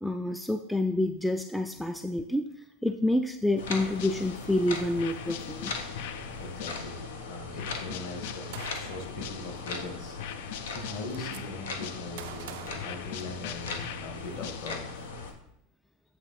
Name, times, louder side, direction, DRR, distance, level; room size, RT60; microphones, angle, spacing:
voice 1, 0.0-2.5 2.8-5.7, left 1 dB, ahead, 7 dB, 0.3 m, -28 dB
sound 1, 3.6-15.3, left 4 dB, 90° left, 0.9 m, -39 dB
sound 2, 3.7-4.6 5.0-7.2 7.6-9.8 10.2-12.4 12.8-15.0, left 10 dB, 70° left, 0.5 m, -42 dB
voice 2, 5.9-14.8, left 2 dB, 50° left, 2 dB, 1.9 m, -41 dB
Gunshot gunfire, 8.5-9.2 10.3-10.4 10.7-11.4 12.2-13.7, right 13 dB, 70° right, 0.4 m, -45 dB
8.0 x 3.0 x 5.7 m, 0.74 s
supercardioid pair, 120°, 0 cm